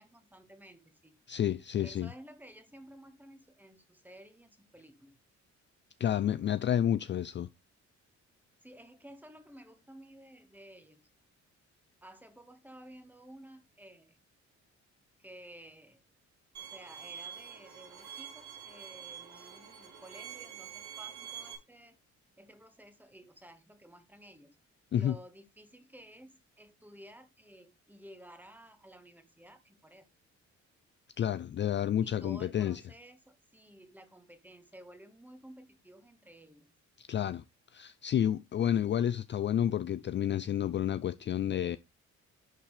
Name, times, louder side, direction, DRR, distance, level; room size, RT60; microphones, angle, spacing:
voice 1, 0.0-1.2 1.8-5.2 8.6-11.0 12.0-14.2 15.2-16.0 16.6-21.9 22.4-24.5 24.9-30.1 32.0-36.7, right 1 dB, 5° right, 1.6 m, -54 dB
voice 2, 1.3-2.1 6.0-7.5 24.9-25.2 31.2-32.8 37.0-37.4 37.7-41.8, left 10 dB, 40° left, 0.4 m, -30 dB
Bowed string instrument, 16.5-21.5, right 8 dB, 65° right, 3.0 m, -46 dB
11.0 x 4.3 x 3.3 m
cardioid pair, 90°, 30 cm